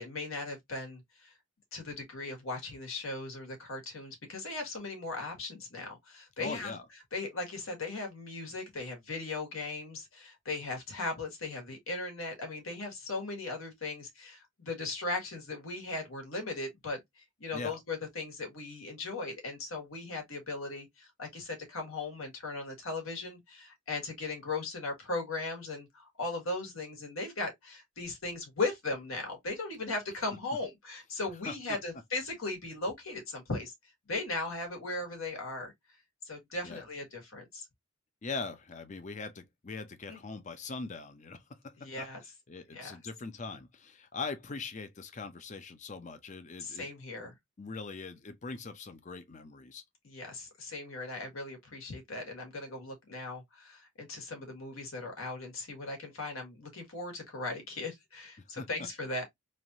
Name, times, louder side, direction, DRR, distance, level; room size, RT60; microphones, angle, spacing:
voice 1, 0.0-1.3 1.7-6.7 7.1-33.7 34.1-35.7 36.2-37.7 40.1-40.2 41.8-42.2 42.7-43.0 46.6-47.3 50.0-59.2, left 3 dB, 80° left, 1.5 m, -38 dB
voice 2, 6.4-6.8 17.5-17.8 31.4-31.8 36.6-36.8 38.2-46.9 47.2-47.3 47.6-49.8 58.5-58.7, left 4 dB, 35° left, 0.5 m, -41 dB
3.2 x 2.5 x 2.7 m
head